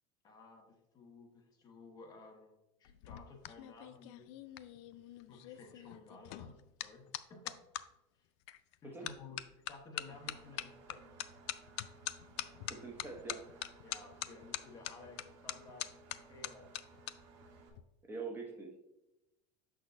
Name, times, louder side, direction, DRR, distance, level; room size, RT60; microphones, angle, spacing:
voice 1, 0.2-4.3 5.3-7.6 8.2-8.3 8.8-11.1 13.8-16.8, left 3 dB, 25° left, 2 dB, 0.9 m, -55 dB
sound 1, 2.8-7.8 8.5-8.8 9.1-17.1 17.4-17.8, left 14 dB, 65° left, 0.4 m, -44 dB
Engine, 10.1-17.7, right 4 dB, 70° right, 1.6 m, -59 dB
voice 2, 12.7-13.6 18.0-18.8, right 4 dB, 15° right, 0 dB, 0.8 m, -44 dB
6.5 x 6.2 x 2.6 m, 0.92 s
cardioid pair, 165°, 16 cm